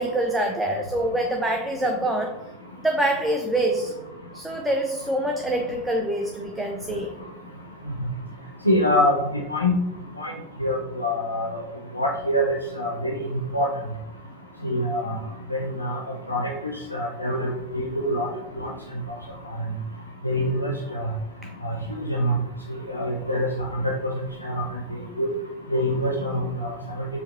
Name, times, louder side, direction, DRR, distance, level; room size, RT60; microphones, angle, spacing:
voice 1, 0.0-2.4 2.8-3.9 4.3-7.1, right 1 dB, 5° right, 2 dB, 0.4 m, -25 dB
voice 2, 8.6-9.1 9.5-9.8 10.2-10.3 10.6-11.6 11.9-13.1 13.5-13.7 14.6-15.1 15.5-16.0 16.3-16.5 16.9-18.3 18.6-18.7 20.2-21.1 21.6-21.7 22.1-22.3 22.9-24.1 24.4-24.6 25.2-25.3 25.7-26.7 27.0-27.1, left 1 dB, 90° left, -1 dB, 0.4 m, -24 dB
4.5 x 2.5 x 2.3 m, 0.91 s
figure-of-eight pair, 85°, 0 cm